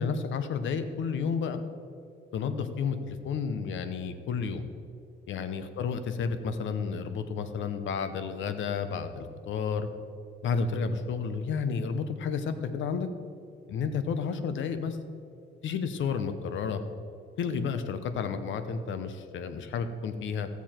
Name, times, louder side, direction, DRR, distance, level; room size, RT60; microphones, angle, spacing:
voice 1, 0.0-1.6 2.3-4.6 5.3-9.9 10.4-13.1 13.7-15.0 15.6-16.8 17.4-20.5, left 5 dB, 75° left, 10 dB, 0.9 m, -31 dB
15.5 x 7.1 x 4.4 m, 2.4 s
cardioid pair, 90°, 20 cm